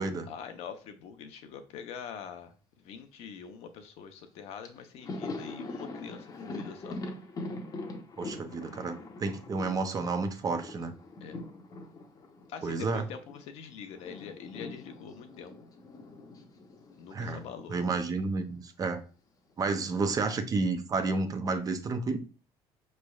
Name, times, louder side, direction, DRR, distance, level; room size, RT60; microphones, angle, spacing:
voice 1, 0.3-7.0 11.2-11.4 12.5-15.5 17.0-17.8, left 7 dB, 70° left, 0.7 m, -44 dB
Thunder, 4.3-4.4 4.6-13.5 13.7-18.0 18.3-18.5 19.6-20.3, left 2 dB, 35° left, 0.8 m, -43 dB
voice 2, 8.2-10.9 12.6-13.0 17.1-17.4 17.7-19.0 19.6-22.2, right 3 dB, 35° right, 0.6 m, -31 dB
5.1 x 3.2 x 2.3 m
cardioid pair, 100°, 11 cm